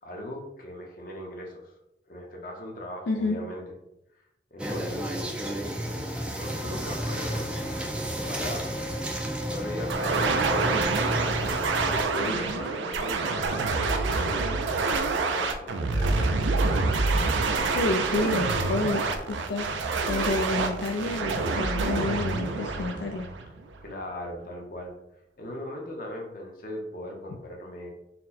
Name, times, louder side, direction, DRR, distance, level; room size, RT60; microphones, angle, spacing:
voice 1, 0.0-1.7 2.1-3.6 4.5-5.1 6.3-7.4 8.2-8.7 9.5-10.2 11.6-16.3 16.7-17.4 23.8-24.9 25.4-27.9, left 1 dB, 50° left, 1 dB, 0.8 m, -38 dB
voice 2, 3.1-3.4 17.7-19.0 19.3-23.3, left 3 dB, 75° left, 2 dB, 0.4 m, -29 dB
sound 1, 4.6-12.0, equal, 5° right, 0.3 m, -31 dB
sound 2, 9.9-23.8, right 3 dB, 85° right, 0.4 m, -27 dB
4.2 x 2.2 x 4.1 m, 0.86 s
head